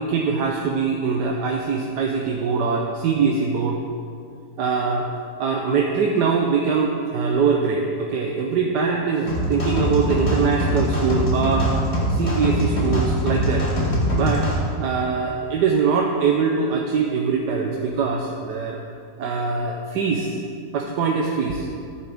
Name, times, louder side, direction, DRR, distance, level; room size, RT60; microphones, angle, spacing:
voice 1, 0.0-3.8 4.6-5.1 5.4-11.7 12.1-13.7 14.1-14.5 14.8-18.8 19.2-20.3 20.7-21.7, right 5 dB, 80° right, 0 dB, 1.4 m, -22 dB
sound 1, 9.3-14.6, equal, 40° left, 2.1 m, -22 dB
14.0 x 9.4 x 3.5 m, 2.4 s
omnidirectional pair, 1.8 m